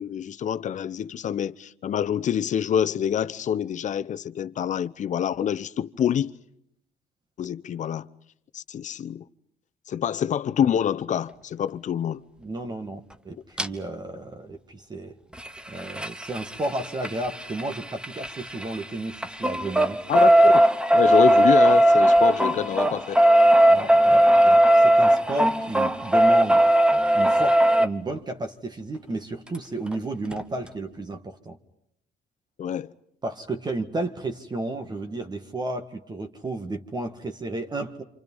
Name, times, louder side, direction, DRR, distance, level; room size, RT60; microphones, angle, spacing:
voice 1, 0.0-6.3 7.4-8.1 8.5-9.2 9.9-12.2 20.1-20.6 20.9-23.2 32.6-32.9, left 9 dB, 45° left, 0.9 m, -26 dB
voice 2, 12.4-15.1 15.7-20.0 23.7-26.6 27.1-31.6 33.2-38.0, right 2 dB, 25° right, 1.7 m, -32 dB
sound 1, 13.6-13.7 15.3-18.8 19.1-27.9 29.5-29.6 29.9-30.0 30.3-30.4, right 1 dB, 5° right, 1.2 m, -18 dB
28.5 x 27.0 x 5.5 m
cardioid pair, 110°, 17 cm